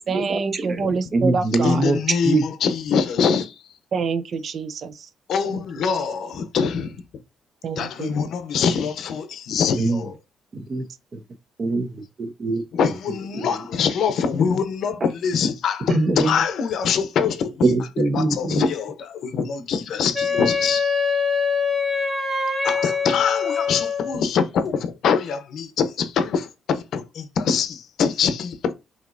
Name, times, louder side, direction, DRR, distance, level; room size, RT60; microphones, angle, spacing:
voice 1, 0.1-1.8 3.9-5.1 7.6-8.2, right 5 dB, 55° right, 0.4 m, -26 dB
voice 2, 1.1-2.0 2.2-2.4 9.8-10.0 10.5-10.8 11.6-12.6 15.9-16.4 17.6-18.6, right 2 dB, 40° right, 0.8 m, -22 dB
voice 3, 1.6-3.5 5.3-7.0 7.8-10.1 12.7-17.7 18.1-21.2 22.6-28.7, left 6 dB, 70° left, 0.7 m, -24 dB
Wind instrument woodwind instrument, 20.1-24.2, left 5 dB, 20° right, 2.3 m, -23 dB
5.4 x 2.9 x 2.5 m
cardioid pair, 90°, 0 cm